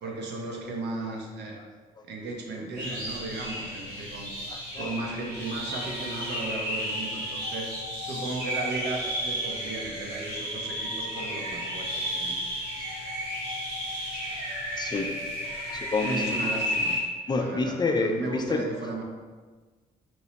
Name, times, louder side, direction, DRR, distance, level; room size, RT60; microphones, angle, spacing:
voice 1, 0.0-1.6 2.0-4.3 4.8-7.7 8.0-12.4 16.0-17.0 17.3-19.0, right 2 dB, 60° right, 0 dB, 0.7 m, -35 dB
sound 1, 2.7-17.0, equal, 85° right, 1.4 m, -33 dB
voice 2, 4.5-4.9 14.8-15.1 15.7-16.4 17.3-18.6, left 3 dB, 20° left, 4 dB, 0.4 m, -28 dB
3.1 x 2.9 x 2.8 m, 1.4 s
hypercardioid pair, 40°, 20 cm